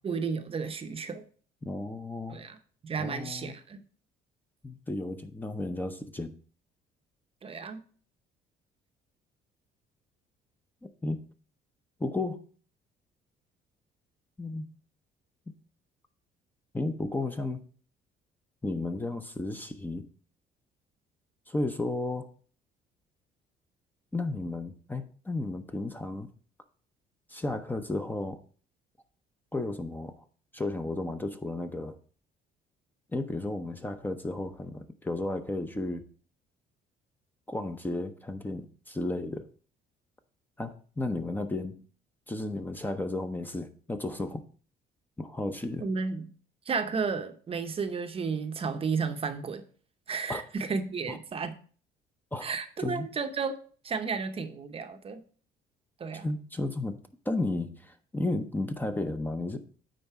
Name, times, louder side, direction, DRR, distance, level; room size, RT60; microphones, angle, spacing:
voice 1, 0.0-1.2 2.3-2.6 2.8-3.8 7.4-7.8 45.8-46.3 46.7-49.6 50.1-51.5 52.4-53.6 53.8-55.2 56.0-56.3, right 5 dB, 35° right, 0.7 m, -33 dB
voice 2, 1.6-2.4 3.0-3.5 4.6-6.3 10.8-11.2 12.0-12.5 14.4-14.7 16.7-17.6 18.6-20.1 21.5-22.3 24.1-26.3 27.3-28.4 29.5-30.2 30.5-32.0 33.1-36.1 37.5-39.4 40.6-41.8 42.3-44.4 45.2-45.9 50.3-50.4 51.1-51.2 52.3-52.5 52.8-53.1 56.1-57.0 57.2-59.6, left 2 dB, 10° left, 0.7 m, -33 dB
9.2 x 4.1 x 4.7 m
cardioid pair, 110°, 17 cm